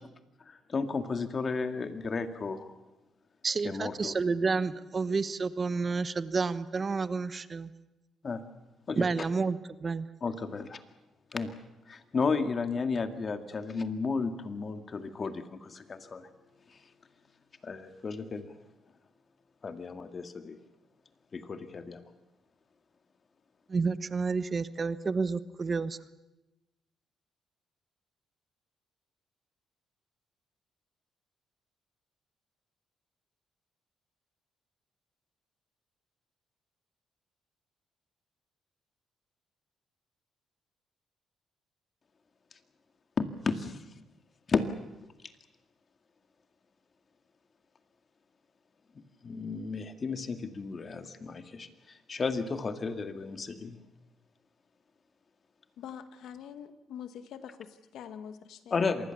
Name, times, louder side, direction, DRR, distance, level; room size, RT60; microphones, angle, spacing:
voice 1, 0.5-2.8 3.6-4.1 8.2-8.4 8.9-9.1 10.2-10.8 11.3-11.5 11.9-16.3 16.7-16.8 17.6-18.5 19.6-20.6 21.3-22.1 43.2-43.8 44.5-44.7 49.0-53.8 58.7-59.1, left 4 dB, 40° left, 8 dB, 2.1 m, -33 dB
voice 2, 3.4-7.7 8.9-10.1 23.7-26.0, right 4 dB, 35° right, 14 dB, 1.0 m, -30 dB
voice 3, 55.8-58.9, left 8 dB, 75° left, 9 dB, 1.7 m, -45 dB
26.5 x 20.0 x 7.1 m, 0.99 s
cardioid pair, 90°, 0 cm